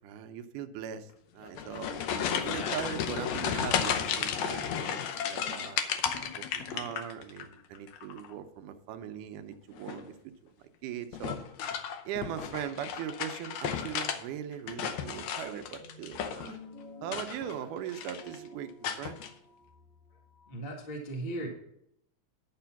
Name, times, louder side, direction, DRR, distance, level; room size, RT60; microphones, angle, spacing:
voice 1, 0.0-1.9 2.3-5.8 6.2-10.1 10.4-10.5 10.8-11.4 12.1-16.6 17.0-19.2, right 9 dB, 75° right, 8 dB, 2.1 m, -40 dB
sound 1, 1.4-7.5 7.8-8.3 9.7-10.1 11.1-14.2 14.5-16.6 17.0-17.6 17.9-18.4 18.8-19.3, left 8 dB, 70° left, 1.8 m, -33 dB
sound 2, 15.6-20.5, left 1 dB, 55° left, 1.9 m, -52 dB
voice 2, 20.5-21.5, right 1 dB, 30° left, -1 dB, 1.0 m, -37 dB
11.0 x 6.0 x 5.8 m, 0.73 s
omnidirectional pair, 3.8 m